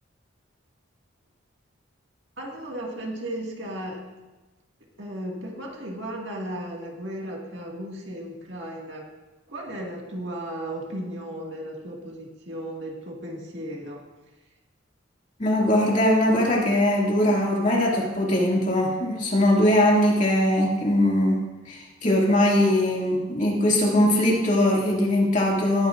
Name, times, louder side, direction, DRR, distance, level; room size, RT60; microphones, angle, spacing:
voice 1, 2.4-4.1 5.0-9.1 9.5-14.0, right 1 dB, 65° right, -1 dB, 2.0 m, -35 dB
voice 2, 15.4-21.4 21.7-25.9, left 1 dB, 35° left, -3 dB, 2.4 m, -21 dB
19.0 x 9.4 x 2.6 m, 1.1 s
head